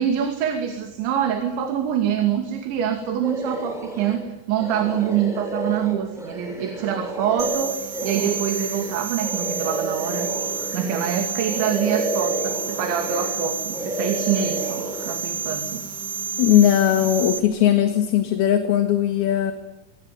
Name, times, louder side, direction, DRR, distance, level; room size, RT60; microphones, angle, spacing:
voice 1, 0.0-10.3 10.7-15.8, right 8 dB, 75° right, 6 dB, 4.7 m, -25 dB
sound 1, 3.2-4.2 4.6-11.2 11.5-13.5 13.7-15.1, right 2 dB, ahead, 7.1 m, -31 dB
sound 2, 7.4-17.4, right 5 dB, 45° right, 4.0 m, -30 dB
voice 2, 16.4-19.5, left 11 dB, 60° left, 7 dB, 3.3 m, -18 dB
25.5 x 23.5 x 9.4 m, 0.98 s
omnidirectional pair, 5.4 m